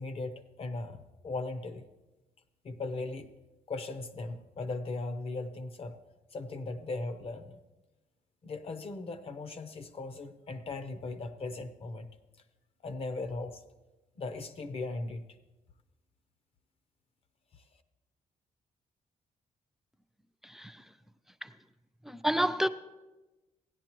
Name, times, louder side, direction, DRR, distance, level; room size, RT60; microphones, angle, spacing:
voice 1, 0.0-1.9 2.6-3.3 3.7-6.0 6.3-7.6 8.4-12.1 12.8-13.6 14.2-15.3 17.5-17.6, left 3 dB, 45° left, 0.7 m, -38 dB
voice 2, 20.4-20.8 21.4-21.5 22.1-22.7, right 1 dB, 5° right, 0.3 m, -29 dB
16.5 x 10.5 x 3.0 m
cardioid pair, 120°, 14 cm